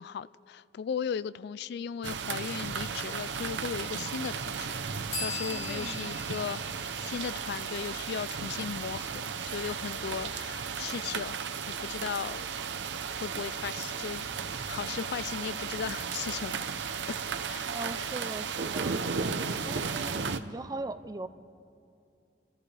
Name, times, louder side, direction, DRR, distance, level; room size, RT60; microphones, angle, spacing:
voice 1, 0.0-6.6 7.0-12.4 13.2-14.3 14.7-16.7 17.1-17.2 17.5-17.7, left 7 dB, 65° left, 18 dB, 0.3 m, -37 dB
sound 1, 2.0-20.4, right 6 dB, 75° right, 0.7 m, -35 dB
sound 2, 5.1-8.7, left 4 dB, 35° left, 3.0 m, -41 dB
voice 2, 5.5-6.1 17.7-21.3, right 2 dB, 20° right, 12 dB, 0.5 m, -40 dB
28.5 x 14.0 x 3.4 m, 2.5 s
head